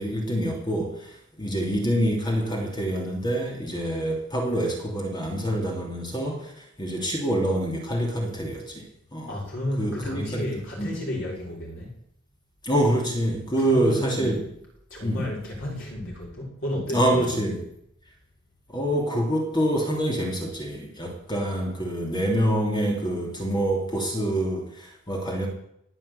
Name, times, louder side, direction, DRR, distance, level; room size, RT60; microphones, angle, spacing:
voice 1, 0.0-8.9 9.1-9.4 9.8-10.5 10.8-10.9 12.6-14.4 15.0-15.3 16.9-17.6 18.7-25.5, right 1 dB, 20° left, 0 dB, 2.9 m, -26 dB
voice 2, 9.3-11.9 13.5-14.3 14.9-17.5, left 1 dB, 55° left, -3 dB, 6.1 m, -32 dB
19.0 x 7.2 x 8.2 m, 0.74 s
head